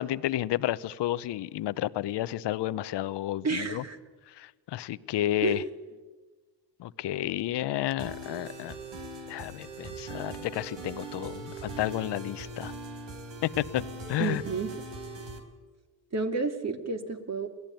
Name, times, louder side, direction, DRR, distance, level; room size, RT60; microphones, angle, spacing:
voice 1, 0.0-3.8 4.3-5.6 6.8-8.8 9.3-12.7 13.4-13.8 14.1-14.4, left 13 dB, 70° left, 17 dB, 0.9 m, -31 dB
voice 2, 3.4-4.0 5.4-5.6 14.2-14.7 16.1-17.5, right 4 dB, 35° right, 6 dB, 2.5 m, -30 dB
sound 1, 8.0-15.4, right 2 dB, 75° right, 4.2 m, -41 dB
23.0 x 17.0 x 9.2 m, 1.3 s
cardioid pair, 80°, 44 cm